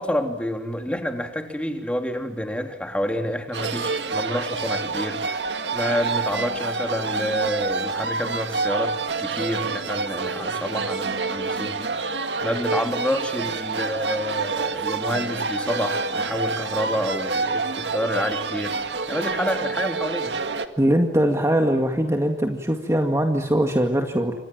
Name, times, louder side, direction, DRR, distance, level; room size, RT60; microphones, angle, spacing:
voice 1, 0.0-5.5 5.7-11.9 12.4-18.8 19.1-20.4, equal, 5° left, 4 dB, 3.4 m, -28 dB
sound 1, 3.5-20.7, right 4 dB, 75° right, 2.0 m, -27 dB
voice 2, 20.8-24.3, right 1 dB, 15° right, 3 dB, 2.1 m, -21 dB
29.0 x 26.5 x 7.6 m, 0.85 s
head